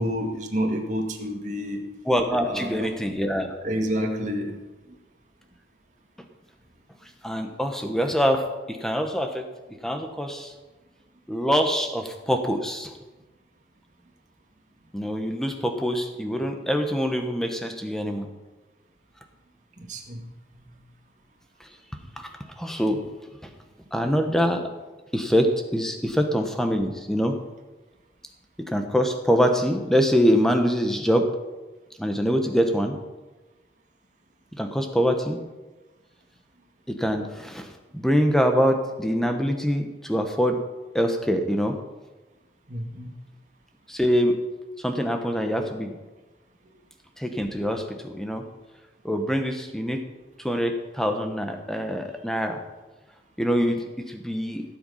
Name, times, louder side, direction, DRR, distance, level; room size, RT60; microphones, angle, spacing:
voice 1, 0.0-1.9 2.4-2.9 3.6-4.6 19.8-20.2 42.7-43.1, equal, 40° right, 1 dB, 2.1 m, -29 dB
voice 2, 2.1-3.6 7.2-8.4 8.7-9.5 9.8-10.5 11.3-12.9 14.9-18.3 22.2-22.3 22.6-23.0 23.4-23.5 23.9-24.7 25.1-27.4 28.7-31.3 32.0-33.0 34.6-35.4 36.9-40.6 40.9-41.8 43.9-44.3 44.8-45.9 47.2-48.4 49.0-50.0 50.4-52.6 53.4-54.6, equal, ahead, 5 dB, 1.2 m, -24 dB
17.0 x 7.9 x 5.6 m, 1.2 s
head